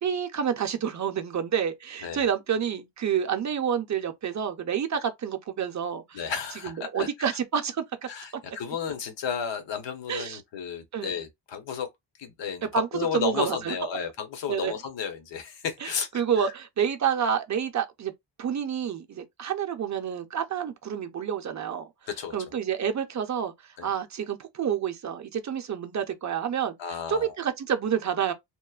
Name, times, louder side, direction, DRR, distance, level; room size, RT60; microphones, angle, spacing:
voice 1, 0.0-6.3 6.6-7.8 10.1-10.4 10.9-11.1 12.7-12.9 13.1-13.7 14.5-14.7 15.8-18.1 18.4-21.9 22.3-26.7 27.1-28.3, right 8 dB, 40° right, 0.5 m, -28 dB
voice 2, 6.1-7.3 8.1-11.9 12.2-16.5 22.1-22.3 23.8-23.9 26.8-27.3, left 6 dB, 65° left, 0.9 m, -33 dB
2.9 x 2.1 x 2.3 m
cardioid pair, 115°, 47 cm